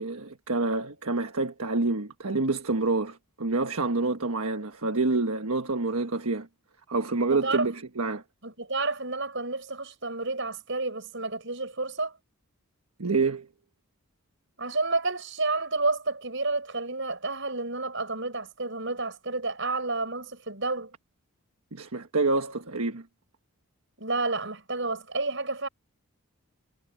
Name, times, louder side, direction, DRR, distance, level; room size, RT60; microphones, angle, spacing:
voice 1, 0.0-6.5 6.9-8.2 13.0-13.5 21.7-23.0, right 3 dB, 80° right, 1.4 m, -27 dB
voice 2, 7.3-7.7 8.4-12.1 14.6-20.9 24.0-25.7, right 3 dB, 55° right, 7.6 m, -30 dB
head